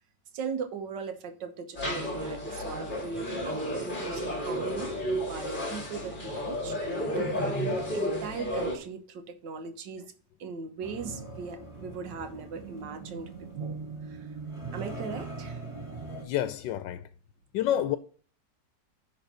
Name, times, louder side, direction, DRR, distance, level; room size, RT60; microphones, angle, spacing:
voice 1, 0.3-10.0 10.4-13.3 13.6-13.8 14.1-14.3 14.7-15.6, right 5 dB, 75° right, 1.8 m, -39 dB
sound 1, 1.7-8.8, equal, 25° left, 2.2 m, -32 dB
sound 2, 10.8-16.2, right 3 dB, 15° right, 2.1 m, -40 dB
voice 2, 16.2-17.1 17.5-18.0, left 11 dB, 90° left, 1.3 m, -28 dB
10.5 x 4.0 x 5.5 m
omnidirectional pair, 1.9 m